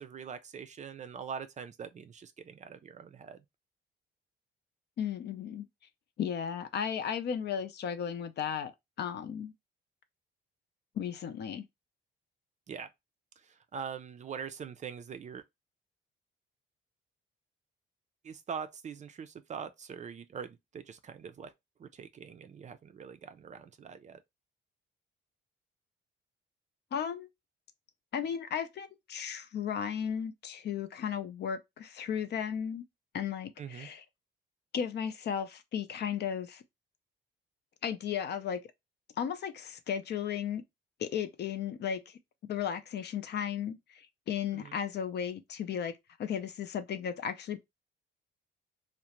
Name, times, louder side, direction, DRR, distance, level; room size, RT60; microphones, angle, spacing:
voice 1, 0.0-3.4 12.7-12.9 13.4-15.4 18.2-21.5 21.8-24.2 33.6-33.9 44.5-44.8, right 7 dB, 35° right, 0.4 m, -43 dB
voice 2, 5.0-5.7 6.2-8.7 9.0-9.5 11.0-11.6 26.9-27.3 28.1-32.8 33.1-34.0 34.7-36.6 37.8-38.6 39.2-40.6 41.0-42.1 42.5-47.6, left 8 dB, 60° left, 0.5 m, -35 dB
2.5 x 2.1 x 2.8 m
cardioid pair, 90°, 20 cm